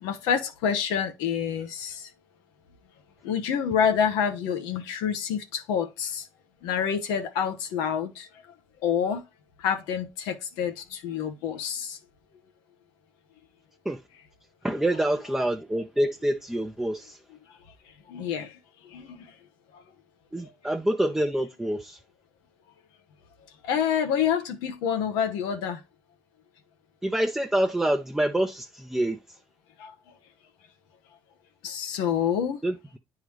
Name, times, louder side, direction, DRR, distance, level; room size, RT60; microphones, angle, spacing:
voice 1, 0.0-2.1 3.2-6.3 6.6-8.3 8.8-9.3 9.6-12.0 18.1-18.6 18.8-19.3 19.7-19.8 20.4-20.5 23.6-25.8 29.8-29.9 31.6-32.6, left 8 dB, 90° left, 0.9 m, -27 dB
voice 2, 14.6-17.2 20.3-22.0 27.0-29.2 32.6-33.0, right 1 dB, 5° right, 0.6 m, -26 dB
9.1 x 3.8 x 3.1 m
supercardioid pair, 85°, 7 cm